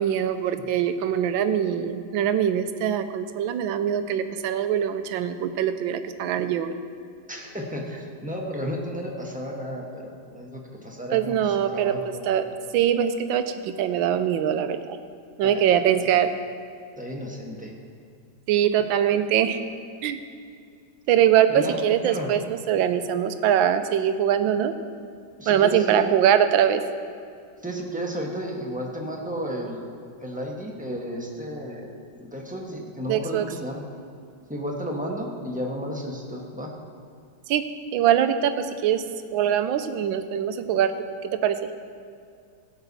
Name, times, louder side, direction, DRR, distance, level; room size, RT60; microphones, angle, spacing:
voice 1, 0.0-6.7 11.1-11.9 12.2-12.5 12.7-15.0 15.4-16.3 18.5-19.6 20.0-20.2 21.1-24.7 25.5-26.8 33.1-33.4 37.5-37.6 37.9-39.0 39.3-40.9 41.2-41.6, right 9 dB, 80° right, 9 dB, 1.4 m, -22 dB
voice 2, 7.3-12.3 15.4-16.0 17.0-17.7 21.5-22.3 25.4-26.1 27.6-29.9 30.2-33.9 34.5-36.7, equal, 5° right, -1 dB, 0.9 m, -33 dB
16.5 x 8.1 x 4.1 m, 2.3 s
omnidirectional pair, 2.2 m